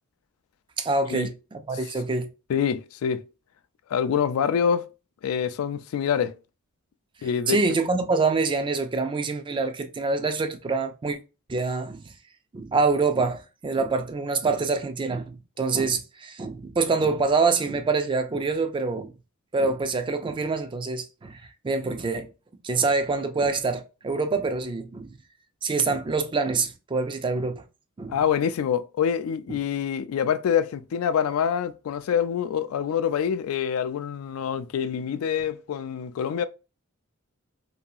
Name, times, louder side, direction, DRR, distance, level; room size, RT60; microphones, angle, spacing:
voice 1, 0.8-2.3 7.5-11.2 11.5-12.0 12.5-19.1 19.5-22.3 22.6-25.1 25.6-27.6 28.0-28.2 29.5-29.6, right 4 dB, 25° right, 0.3 m, -26 dB
voice 2, 2.5-3.2 3.9-4.9 5.2-6.3 7.2-7.6 28.1-36.4, left 8 dB, 75° left, 0.3 m, -26 dB
2.7 x 2.3 x 2.5 m
head